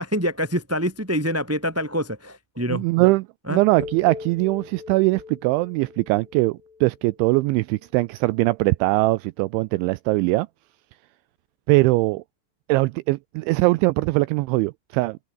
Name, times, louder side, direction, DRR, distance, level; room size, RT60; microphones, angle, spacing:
voice 1, 0.0-2.8 3.5-3.6, equal, 5° right, 3.0 m, -25 dB
voice 2, 2.7-3.2 3.5-10.5 11.7-12.2 12.7-15.2, right 22 dB, 85° right, 2.7 m, -21 dB
sound 1, 3.8-7.9, left 5 dB, 55° left, 8.2 m, -42 dB
open air
omnidirectional pair, 5.8 m